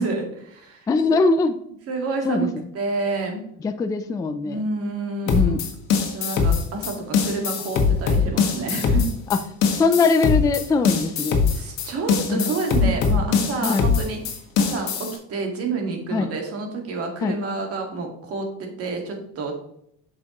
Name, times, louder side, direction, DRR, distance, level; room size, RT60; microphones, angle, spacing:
voice 1, 0.0-1.2 1.9-3.4 4.4-5.6 6.1-9.1 11.5-14.2 14.6-19.5, right 3 dB, 45° right, 2 dB, 1.9 m, -29 dB
voice 2, 0.9-1.6 2.2-2.5 3.6-4.6 5.3-5.6 9.3-9.4 9.7-11.4 12.3-12.6 13.6-13.8 16.1-16.3 17.2-17.4, left 4 dB, 10° left, 8 dB, 0.3 m, -21 dB
sound 1, 5.3-15.2, left 5 dB, 60° left, 1.5 m, -22 dB
8.3 x 6.5 x 3.0 m, 0.71 s
cardioid pair, 145°, 32 cm